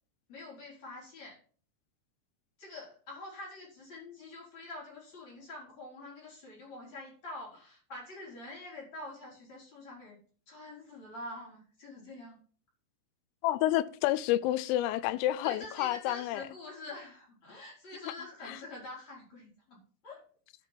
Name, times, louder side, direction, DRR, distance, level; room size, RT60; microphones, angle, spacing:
voice 1, 0.3-1.4 2.6-10.2 10.5-12.4 15.4-20.2, left 2 dB, 35° left, 4.7 m, -46 dB
voice 2, 13.4-16.4 18.5-18.6, left 14 dB, 85° left, 3.3 m, -29 dB
10.5 x 6.0 x 7.4 m
omnidirectional pair, 5.9 m